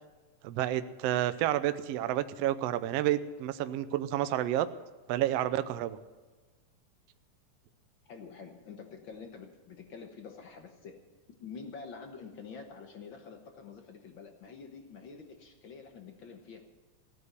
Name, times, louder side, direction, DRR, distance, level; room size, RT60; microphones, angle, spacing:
voice 1, 0.4-4.7 5.1-6.0, right 13 dB, 90° right, 11 dB, 1.4 m, -30 dB
voice 2, 8.0-11.0 11.4-16.6, left 5 dB, 60° left, 4 dB, 1.3 m, -47 dB
15.5 x 9.8 x 6.8 m, 1.3 s
omnidirectional pair, 3.7 m